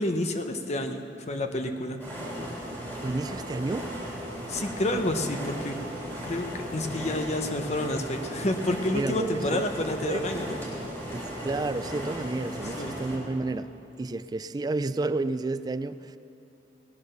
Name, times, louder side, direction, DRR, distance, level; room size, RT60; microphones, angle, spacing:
voice 1, 0.0-2.0 4.5-5.7 6.2-10.6 12.8-12.9, left 1 dB, 40° left, 6 dB, 0.9 m, -29 dB
sound 1, 2.0-13.2, equal, 10° left, 3.7 m, -36 dB
voice 2, 3.0-3.9 8.9-9.6 10.0-10.2 11.1-13.7 14.0-16.2, right 2 dB, 25° right, 13 dB, 0.3 m, -31 dB
18.5 x 9.6 x 6.6 m, 2.8 s
head